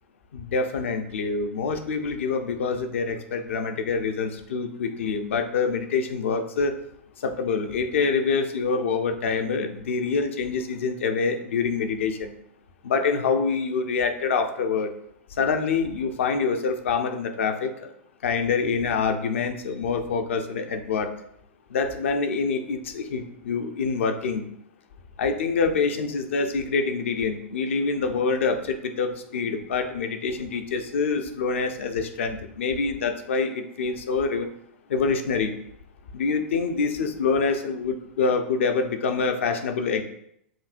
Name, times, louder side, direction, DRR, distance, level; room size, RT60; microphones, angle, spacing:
voice 1, 0.3-6.7 7.2-12.3 12.8-14.9 15.4-17.9 18.2-21.1 21.7-24.4 25.2-34.5 34.9-35.5 36.1-40.0, left 5 dB, 65° left, 7 dB, 0.6 m, -26 dB
7.3 x 2.7 x 2.5 m, 0.73 s
figure-of-eight pair, 100°, 7 cm